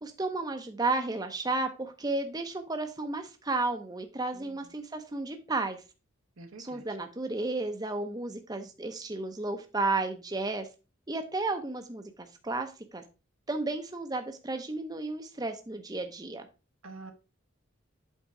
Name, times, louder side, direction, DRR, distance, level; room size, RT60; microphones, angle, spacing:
voice 1, 0.0-5.8 6.6-10.7 11.1-13.0 13.5-16.5, right 3 dB, 20° right, 6 dB, 0.6 m, -33 dB
voice 2, 6.4-6.9 16.8-17.1, right 3 dB, 85° right, 4 dB, 1.2 m, -47 dB
8.1 x 3.7 x 4.8 m, 0.32 s
head